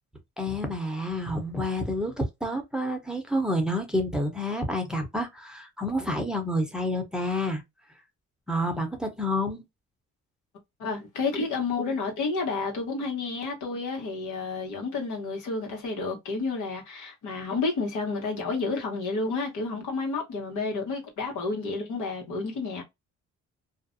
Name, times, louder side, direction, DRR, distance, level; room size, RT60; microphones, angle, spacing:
voice 1, 0.4-7.6 8.5-9.6, left 1 dB, ahead, 0.7 m, -29 dB
voice 2, 10.8-22.8, left 3 dB, 80° left, 1.2 m, -30 dB
2.5 x 2.1 x 2.5 m
cardioid pair, 90°, 30 cm